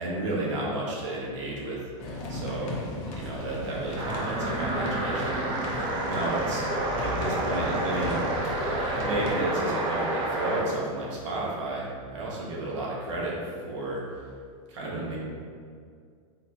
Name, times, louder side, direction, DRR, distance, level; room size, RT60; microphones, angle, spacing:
voice 1, 0.0-1.8 2.3-5.6 6.0-6.7 7.0-8.2 9.0-13.4 13.7-14.0 14.7-15.2, right 2 dB, 60° right, -5 dB, 1.4 m, -32 dB
sound 1, 2.0-9.3, left 1 dB, 35° left, 0.9 m, -36 dB
sound 2, 4.0-10.7, right 1 dB, 30° right, 0.6 m, -29 dB
4.1 x 4.1 x 2.8 m, 2.1 s
supercardioid pair, 150°, 17 cm